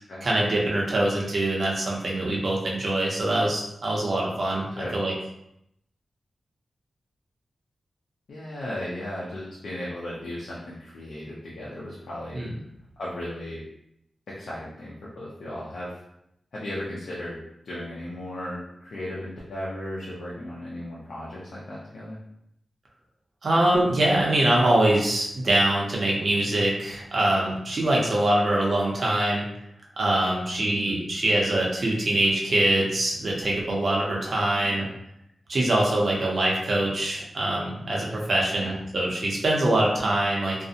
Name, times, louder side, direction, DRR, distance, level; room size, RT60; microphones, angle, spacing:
voice 1, 0.2-5.1 12.3-12.5 23.4-29.5 30.0-34.8 35.5-40.6, right 1 dB, 45° right, -3 dB, 0.5 m, -24 dB
voice 2, 8.3-12.4 13.0-13.6 14.3-16.0 16.5-17.4 17.6-22.2 30.7-31.0 34.6-34.9 38.6-38.8, left 1 dB, 70° left, -7 dB, 0.5 m, -36 dB
2.4 x 2.0 x 2.7 m, 0.79 s
wide cardioid pair, 175°, 0 cm